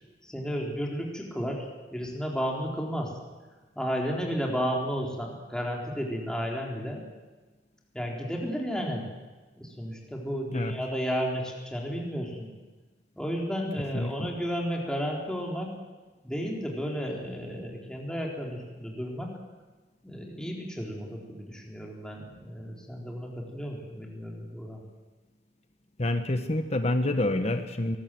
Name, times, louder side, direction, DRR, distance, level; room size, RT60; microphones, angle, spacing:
voice 1, 0.2-3.2 3.7-7.0 7.9-9.1 9.6-12.5 13.2-15.7 16.2-19.4 20.0-24.8, equal, 5° left, -1 dB, 4.2 m, -33 dB
voice 2, 26.0-28.0, left 1 dB, 35° left, 8 dB, 1.3 m, -27 dB
23.5 x 20.0 x 7.8 m, 1.3 s
head